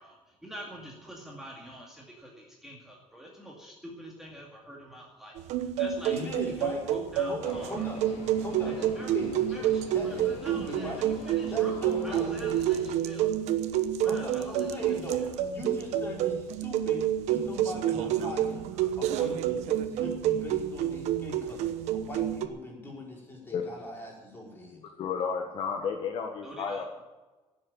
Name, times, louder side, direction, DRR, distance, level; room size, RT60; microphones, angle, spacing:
voice 1, 0.0-7.9 8.6-9.2 9.5-13.3 14.0-15.4 18.7-19.3 26.4-27.0, right 1 dB, 5° right, -3 dB, 2.2 m, -45 dB
sound 1, 5.4-22.5, right 10 dB, 75° right, 1.1 m, -29 dB
voice 2, 6.1-6.8 7.2-8.0 8.4-8.7 9.1-9.3 9.9-11.0 11.5-12.3 14.0-15.2 15.5-17.0 17.3-18.7 19.0-24.8, left 1 dB, 20° left, -2 dB, 4.7 m, -40 dB
sound 2, 7.4-12.9, left 4 dB, 90° left, 3.6 m, -44 dB
voice 3, 25.0-26.8, left 6 dB, 50° left, 3 dB, 1.5 m, -32 dB
16.5 x 7.8 x 9.0 m, 1.2 s
cardioid pair, 175°, 12 cm